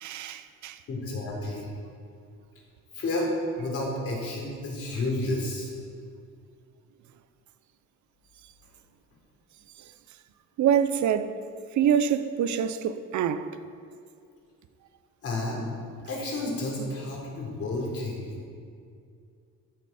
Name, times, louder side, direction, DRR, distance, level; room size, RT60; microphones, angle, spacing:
voice 1, 0.0-0.8 10.6-11.4 11.7-13.5, right 8 dB, 75° right, 0.7 m, -25 dB
voice 2, 0.9-1.7 2.9-3.3 3.6-5.7 15.2-15.7 16.0-18.4, left 2 dB, 50° left, 3.8 m, -31 dB
14.5 x 12.5 x 4.3 m
cardioid pair, 175°, 30 cm